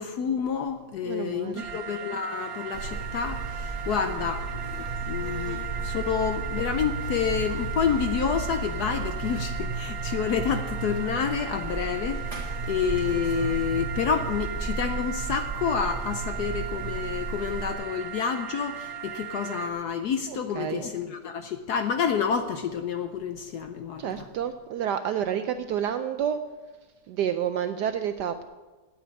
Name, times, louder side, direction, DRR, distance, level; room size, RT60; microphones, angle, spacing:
voice 1, 0.0-4.5 5.1-24.1, left 7 dB, 70° left, 8 dB, 0.9 m, -29 dB
voice 2, 1.0-1.8 20.3-20.9 24.0-26.4 27.1-28.4, right 9 dB, 75° right, 9 dB, 1.0 m, -29 dB
sound 1, 1.6-19.7, right 9 dB, 55° right, 1.3 m, -37 dB
Buzz, 2.7-17.7, right 3 dB, 15° right, 2.6 m, -34 dB
8.8 x 8.5 x 9.4 m, 1.3 s
omnidirectional pair, 2.2 m